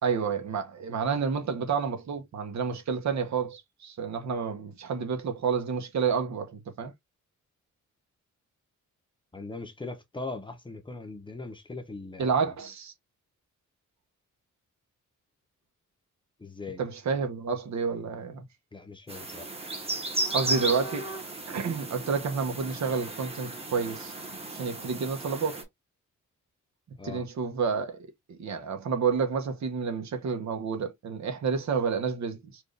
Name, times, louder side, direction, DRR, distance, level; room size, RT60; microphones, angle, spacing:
voice 1, 0.0-6.9 12.2-12.9 16.8-18.4 20.3-21.1 21.5-24.1 24.5-25.6 27.0-28.0 28.3-32.6, right 5 dB, 65° right, 1.2 m, -29 dB
voice 2, 9.3-12.3 16.4-16.8 18.7-19.5 27.0-27.3, left 3 dB, 15° left, 0.8 m, -40 dB
sound 1, 19.1-25.6, right 2 dB, 20° right, 1.2 m, -35 dB
4.5 x 2.6 x 3.3 m
wide cardioid pair, 160°, 31 cm